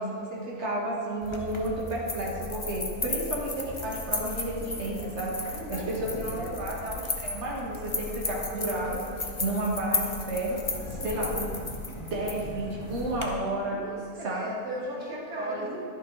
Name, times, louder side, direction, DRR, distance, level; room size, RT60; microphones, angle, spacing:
voice 1, 0.0-10.6 10.9-11.6 12.0-13.8 14.2-14.5 15.4-15.7, right 1 dB, 45° right, -4 dB, 2.2 m, -32 dB
sound 1, 1.2-13.2, left 3 dB, 25° left, 0.9 m, -35 dB
voice 2, 5.4-6.7 10.9-11.3 13.7-15.8, equal, 75° right, -3 dB, 2.2 m, -38 dB
11.5 x 11.0 x 4.1 m, 2.3 s
omnidirectional pair, 1.6 m